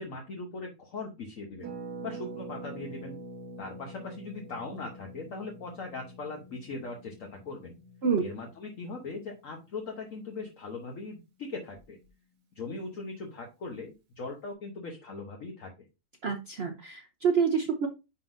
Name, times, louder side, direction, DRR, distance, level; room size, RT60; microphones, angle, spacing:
voice 1, 0.0-1.7 2.0-3.2 3.6-7.8 8.2-12.0 12.5-15.7, left 3 dB, 60° left, 2 dB, 1.3 m, -40 dB
Harp, 1.6-11.2 11.5-11.6 11.8-12.1, right 2 dB, 80° right, 1.7 m, -46 dB
voice 2, 16.2-17.9, right 6 dB, 50° right, 5 dB, 0.8 m, -27 dB
10.0 x 3.8 x 2.6 m, 0.26 s
omnidirectional pair, 1.6 m